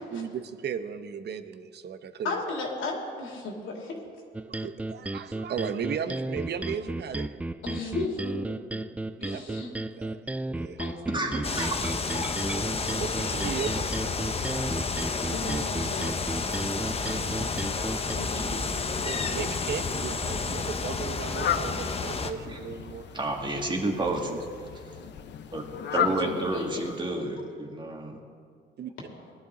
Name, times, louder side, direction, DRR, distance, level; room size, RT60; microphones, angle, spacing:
voice 1, 0.1-2.3 4.5-7.3 9.2-9.6 10.0-10.2 10.5-10.8 12.5-14.3 17.1-17.5 19.0-23.1 24.3-24.4 26.0-26.3 28.8-28.9, right 7 dB, 55° right, 10 dB, 0.8 m, -36 dB
voice 2, 2.2-4.0 7.6-8.4 9.2-9.7 10.8-11.4 15.2-16.2 18.1-18.5 26.2-26.9, left 3 dB, 80° left, -1 dB, 2.9 m, -35 dB
sound 1, 4.3-18.1, right 2 dB, 5° right, 0.3 m, -34 dB
voice 3, 11.1-11.8 22.5-22.6 23.1-24.4 25.5-25.6 25.9-28.2, right 2 dB, 25° right, 1 dB, 2.1 m, -30 dB
sound 2, 11.4-22.3, left 4 dB, 30° left, 0.9 m, -30 dB
Fowl, 19.9-27.2, left 9 dB, 60° left, 0.8 m, -35 dB
19.0 x 11.5 x 3.9 m, 2.2 s
cardioid pair, 90°, 20 cm